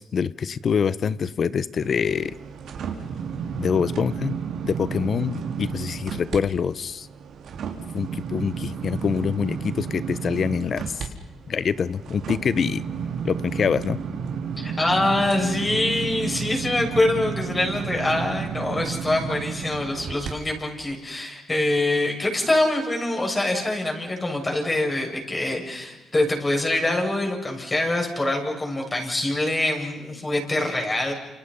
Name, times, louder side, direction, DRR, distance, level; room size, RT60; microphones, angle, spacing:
voice 1, 0.0-2.3 3.6-4.4 4.7-7.1 7.9-11.1 11.5-12.8 13.2-14.0, left 6 dB, 50° left, 17 dB, 1.0 m, -25 dB
sound 1, 1.8-6.4 6.8-20.3 20.8-20.9, right 6 dB, 70° right, 3.9 m, -32 dB
voice 2, 14.6-31.1, left 2 dB, 20° left, 2 dB, 7.6 m, -24 dB
29.5 x 28.0 x 5.7 m, 1.1 s
cardioid pair, 90°, 0 cm